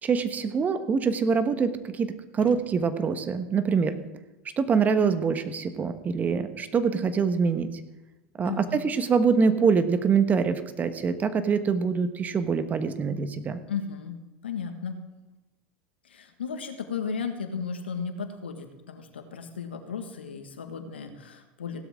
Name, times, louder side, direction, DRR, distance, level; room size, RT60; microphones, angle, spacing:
voice 1, 0.0-4.0 4.6-7.8 8.4-13.6, right 5 dB, 30° right, 10 dB, 1.2 m, -25 dB
voice 2, 8.4-8.8 13.7-14.1 14.4-15.0 16.0-21.8, left 6 dB, 90° left, 6 dB, 1.7 m, -35 dB
16.5 x 12.0 x 3.7 m, 1.1 s
hypercardioid pair, 90°, 6 cm